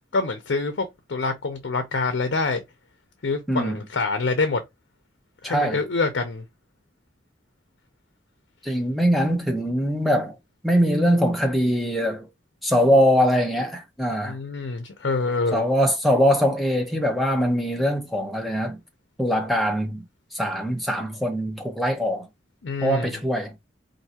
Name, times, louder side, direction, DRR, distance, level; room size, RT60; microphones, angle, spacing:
voice 1, 0.1-2.6 3.2-4.6 5.4-6.4 14.2-15.6 22.6-23.2, left 3 dB, 75° left, 0.6 m, -26 dB
voice 2, 3.5-3.8 5.4-5.8 8.6-10.3 10.6-12.3 12.6-14.4 15.5-18.8 19.2-20.0 20.3-22.3 22.8-23.5, equal, ahead, 0.8 m, -22 dB
4.5 x 2.6 x 2.8 m
head